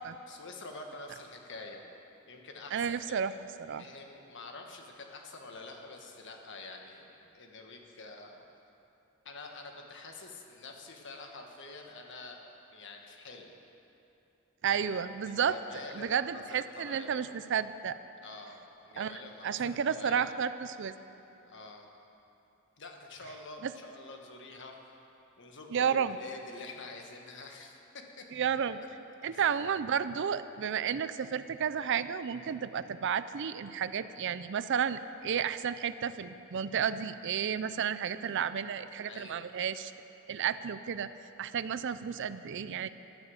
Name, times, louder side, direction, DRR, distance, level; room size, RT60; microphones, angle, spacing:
voice 1, 0.3-1.8 2.3-3.2 3.7-8.4 9.2-13.5 14.8-17.2 18.2-20.5 21.4-21.9 22.8-25.0 25.4-28.5 29.2-29.6 39.0-39.6, left 3 dB, 60° left, 2 dB, 1.5 m, -47 dB
voice 2, 2.7-3.8 14.6-15.6 15.9-17.9 19.0-20.9 23.6-23.7 25.7-26.2 28.3-28.8 29.2-39.9 40.3-41.1 41.4-42.9, right 7 dB, 60° right, 13 dB, 0.4 m, -32 dB
12.0 x 11.0 x 7.1 m, 2.8 s
head